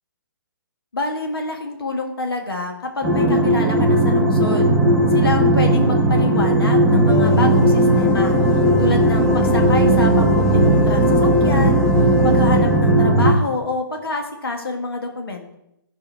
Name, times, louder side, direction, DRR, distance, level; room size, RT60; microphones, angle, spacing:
voice 1, 0.9-4.7 5.1-8.4 8.8-11.8 12.2-15.5, left 2 dB, 85° left, 2 dB, 1.7 m, -27 dB
sound 1, 3.0-13.3, right 1 dB, ahead, 1.0 m, -16 dB
sound 2, 7.1-13.2, left 2 dB, 20° left, 0.6 m, -24 dB
10.5 x 5.5 x 4.6 m, 0.83 s
hypercardioid pair, 150°, 12 cm